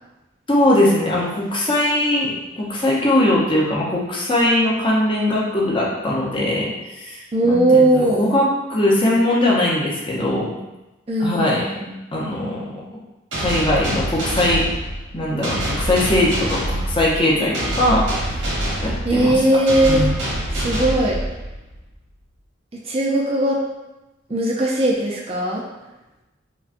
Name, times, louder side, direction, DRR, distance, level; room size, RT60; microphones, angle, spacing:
voice 1, 0.5-10.5 11.2-11.7 12.1-12.7 13.4-14.7 15.1-18.0 18.4-18.5 18.8-19.4 19.9-20.2, left 1 dB, 25° left, -5 dB, 0.7 m, -20 dB
voice 2, 7.3-8.2 11.1-12.0 19.0-20.0 20.5-21.2 22.9-23.6 24.3-25.6, right 1 dB, 30° right, -3 dB, 0.4 m, -18 dB
sound 1, 13.3-21.8, right 1 dB, 80° right, 1.2 m, -25 dB
5.1 x 2.2 x 2.5 m, 1.0 s
head